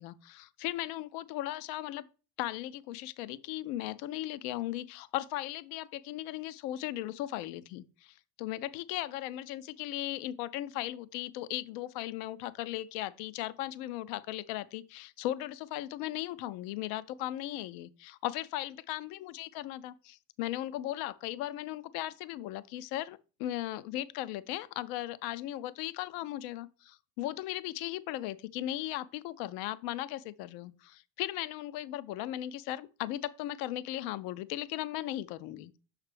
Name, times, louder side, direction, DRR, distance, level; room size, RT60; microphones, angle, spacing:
voice 1, 0.0-2.0 2.4-35.7, left 14 dB, 55° left, 0.5 m, -37 dB
6.4 x 4.8 x 3.3 m
hypercardioid pair, 70°, 45 cm